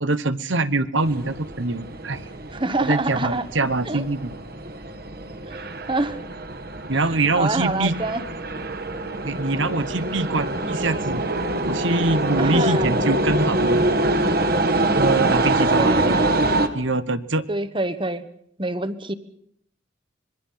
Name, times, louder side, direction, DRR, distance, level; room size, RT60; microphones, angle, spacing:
voice 1, 0.0-2.2 2.8-4.3 6.9-7.9 9.2-11.2 11.6-13.8 14.9-16.3 16.7-17.4, right 2 dB, 75° right, 12 dB, 1.2 m, -24 dB
sound 1, 1.0-16.7, right 2 dB, 50° right, 1.7 m, -25 dB
voice 2, 2.5-3.4 3.9-4.0 5.5-6.2 7.3-8.2 12.4-12.9 15.8-16.4 17.5-18.2 18.6-19.1, right 2 dB, 25° right, 12 dB, 1.2 m, -26 dB
26.0 x 22.0 x 5.8 m, 0.69 s
head